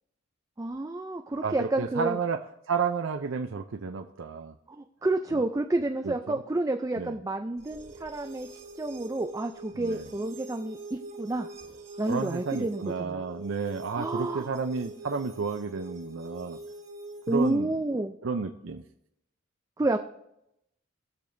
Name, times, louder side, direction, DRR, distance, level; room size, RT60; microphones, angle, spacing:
voice 1, 0.6-2.2 4.8-11.5 12.0-13.2 14.0-14.6 17.3-18.2 19.8-20.0, right 2 dB, 15° right, 5 dB, 0.4 m, -30 dB
voice 2, 1.4-2.4 2.7-4.5 5.3-5.4 6.0-6.4 7.0-7.2 9.8-10.1 12.1-16.6 17.3-17.7 18.2-18.8, right 5 dB, 75° right, 6 dB, 0.5 m, -31 dB
sound 1, 7.6-17.6, right 2 dB, 35° right, 1.6 m, -44 dB
19.0 x 6.8 x 2.6 m, 0.82 s
head